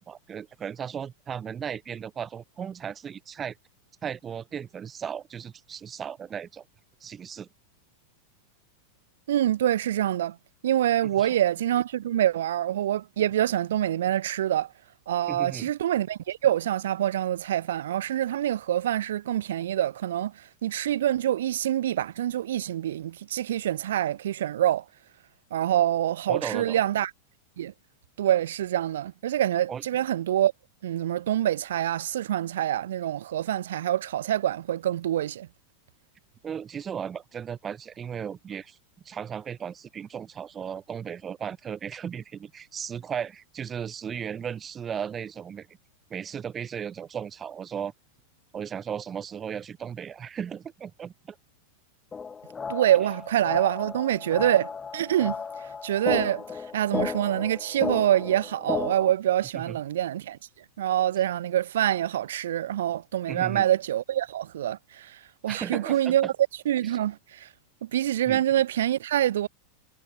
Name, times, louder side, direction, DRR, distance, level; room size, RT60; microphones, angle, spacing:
voice 1, 0.0-3.5 4.0-6.6 7.0-7.5 11.2-11.4 15.3-15.7 26.3-26.8 29.7-29.8 36.4-38.8 39.0-45.7 46.1-47.9 48.5-51.4 59.5-59.8 63.3-63.7 65.5-66.3 68.2-68.4, right 8 dB, 20° right, 5.0 m, -36 dB
voice 2, 9.3-10.4 10.6-14.7 15.1-24.8 25.5-27.1 27.6-27.7 28.2-30.5 30.8-35.5 52.7-55.4 55.8-60.4 60.8-66.3 66.7-67.5 67.9-69.5, right 12 dB, 60° right, 3.6 m, -26 dB
sound 1, 52.1-59.1, left 5 dB, 15° left, 1.6 m, -34 dB
figure-of-eight pair, 90°, 0 cm